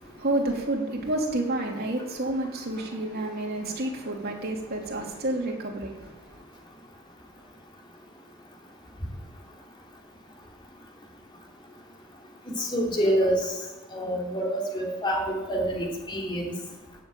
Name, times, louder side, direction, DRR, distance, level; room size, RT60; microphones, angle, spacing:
voice 1, 0.0-6.4, right 1 dB, 45° right, -1 dB, 3.1 m, -30 dB
voice 2, 12.6-13.5 13.9-16.5, equal, 20° left, -2 dB, 3.2 m, -27 dB
15.0 x 7.3 x 9.0 m, 1.1 s
head